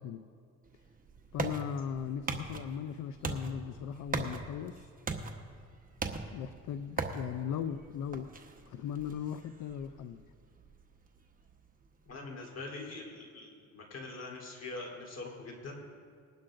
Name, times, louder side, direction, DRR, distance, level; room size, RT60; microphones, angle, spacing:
sound 1, 0.7-12.1, right 3 dB, 30° right, 1.1 m, -41 dB
voice 1, 1.3-4.9 6.3-8.3 8.7-10.2, left 8 dB, 75° left, 10 dB, 0.6 m, -38 dB
voice 2, 12.1-15.8, left 3 dB, 55° left, -1 dB, 3.5 m, -43 dB
21.0 x 11.5 x 2.6 m, 2.3 s
cardioid pair, 90°, 30 cm